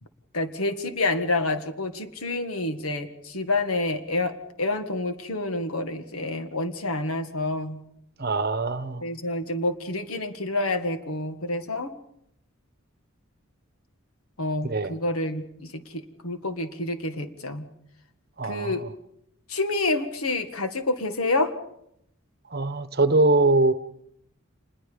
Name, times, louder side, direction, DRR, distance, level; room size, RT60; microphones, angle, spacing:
voice 1, 0.3-7.8 9.0-11.9 14.4-17.7 18.4-18.9 19.5-21.5, left 2 dB, 90° left, 1.9 m, -28 dB
voice 2, 8.2-9.1 14.6-14.9 18.4-18.9 22.5-23.7, right 2 dB, 45° right, 1.1 m, -22 dB
28.5 x 21.0 x 5.2 m
head